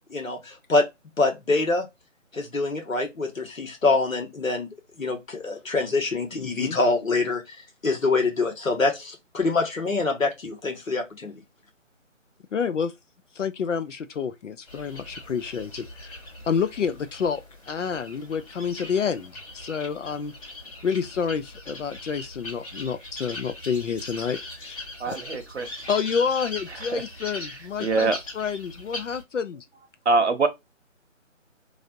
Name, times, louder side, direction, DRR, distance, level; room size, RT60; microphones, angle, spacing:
voice 1, 0.1-0.9 1.2-1.9 2.3-4.7 5.0-7.6 7.8-11.4, left 3 dB, 90° left, 1.5 m, -25 dB
voice 2, 6.4-6.8 12.5-12.9 13.4-16.2 16.5-17.4 17.7-20.3 20.8-25.2 25.9-29.7, left 6 dB, 65° left, 0.5 m, -29 dB
sound 1, 14.7-29.2, left 2 dB, 25° left, 1.6 m, -40 dB
voice 3, 25.0-25.7 26.9-27.0 27.8-28.2 30.0-30.5, right 3 dB, 60° right, 0.8 m, -23 dB
3.3 x 2.4 x 2.5 m
figure-of-eight pair, 170°, 39 cm